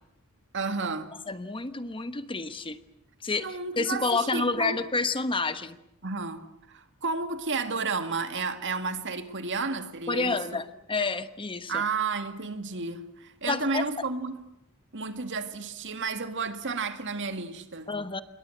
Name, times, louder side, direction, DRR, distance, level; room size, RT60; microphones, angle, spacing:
voice 1, 0.5-1.1 3.4-4.8 6.0-10.4 11.7-14.4 14.9-17.9, right 4 dB, 55° right, 2.2 m, -32 dB
voice 2, 1.3-2.8 3.2-3.5 3.8-5.8 10.1-11.8 13.5-13.8 17.9-18.2, left 3 dB, 25° left, 1.1 m, -29 dB
28.0 x 22.0 x 7.9 m
head